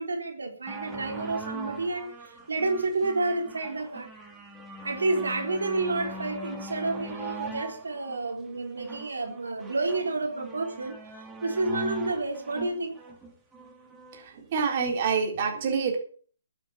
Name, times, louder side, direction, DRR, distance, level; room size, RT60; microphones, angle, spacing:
voice 1, 0.0-4.1 4.8-13.0, right 2 dB, 90° right, 3 dB, 3.6 m, -30 dB
sound 1, 0.7-14.2 15.0-15.1, right 2 dB, 10° right, 2.5 m, -41 dB
voice 2, 14.1-16.0, right 6 dB, 40° right, 2 dB, 3.8 m, -27 dB
12.0 x 8.4 x 7.5 m, 0.43 s
hypercardioid pair, 150°, 0 cm